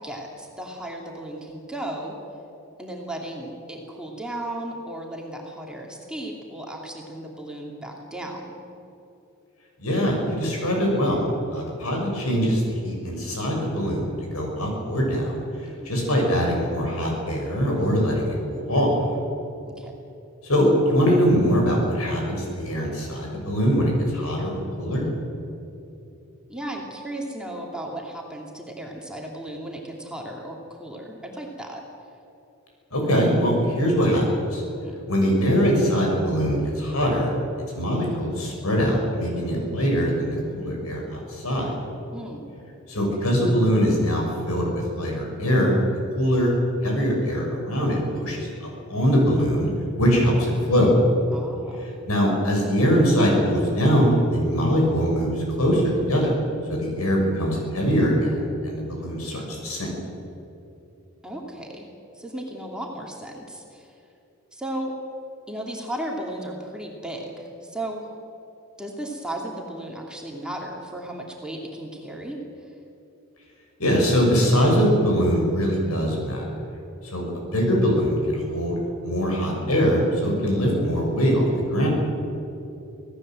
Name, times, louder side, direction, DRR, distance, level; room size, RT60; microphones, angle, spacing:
voice 1, 0.0-2.1 2.8-8.6 15.6-16.1 19.7-19.9 26.5-31.8 34.7-35.0 42.1-42.5 51.3-51.9 61.2-61.9 62.2-63.9 64.5-64.9 65.5-68.1 68.8-72.4, right 1 dB, 5° right, -1 dB, 2.6 m, -35 dB
voice 2, 9.8-15.3 15.8-18.9 20.4-25.1 32.9-34.6 35.1-37.3 37.7-41.7 42.9-45.8 46.1-46.5 46.8-48.5 48.9-49.7 50.0-50.9 52.1-56.4 56.7-59.9 73.8-76.5 77.1-78.8 79.0-81.9, equal, 80° left, 0 dB, 6.8 m, -22 dB
26.5 x 17.0 x 7.7 m, 2.8 s
head